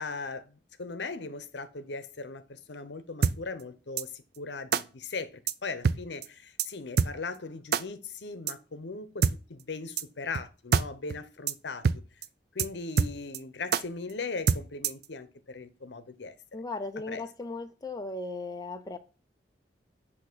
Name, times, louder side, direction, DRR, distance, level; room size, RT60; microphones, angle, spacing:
voice 1, 0.0-11.9 12.5-16.3 17.1-17.2, left 4 dB, 80° left, 0.8 m, -39 dB
sound 1, 3.2-3.4 4.0-4.1 4.7-4.8 5.5-5.6 5.8-6.0 6.2-6.3 6.6-6.7 7.0-7.1 7.7-7.8 8.5-8.6 9.2-9.4 10.0-10.1 10.4-10.5 10.7-10.9 11.1-11.2 11.5-11.6 11.8-12.0 12.2-12.3 12.6-12.7 13.0-13.4 13.7-13.8 14.5-15.1, right 6 dB, 60° right, 0.4 m, -25 dB
voice 2, 16.5-19.0, left 3 dB, 20° left, 0.5 m, -37 dB
8.1 x 2.9 x 6.1 m
head